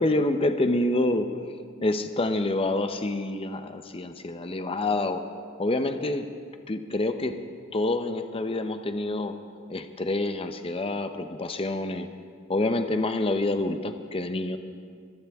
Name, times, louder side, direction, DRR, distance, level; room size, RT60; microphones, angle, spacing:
voice 1, 0.0-1.4 1.8-5.2 5.6-6.3 6.7-7.4 7.7-9.4 9.7-11.1 11.4-12.1 12.5-14.6, left 2 dB, 25° left, 8 dB, 0.7 m, -27 dB
23.5 x 16.0 x 3.6 m, 2.1 s
head